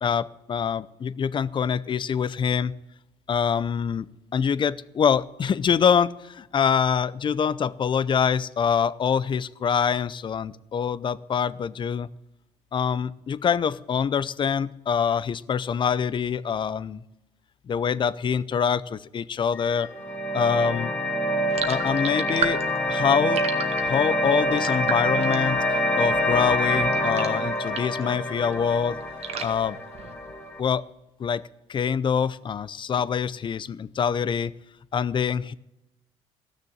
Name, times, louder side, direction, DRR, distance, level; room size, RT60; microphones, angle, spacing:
voice 1, 0.0-2.7 3.3-4.1 4.3-12.1 12.7-17.0 17.7-19.9 20.3-20.9 21.7-22.6 22.9-23.4 23.8-25.6 26.0-29.0 29.4-29.8 30.6-30.8 31.2-31.4 31.7-34.5 34.9-35.5, left 7 dB, 40° left, 18 dB, 0.6 m, -25 dB
sound 1, 19.5-30.6, left 1 dB, 10° left, 2.3 m, -26 dB
sound 2, 21.5-28.1 28.4-30.5, right 6 dB, 55° right, 1.5 m, -35 dB
15.0 x 6.7 x 8.8 m, 0.90 s
supercardioid pair, 80°, 13 cm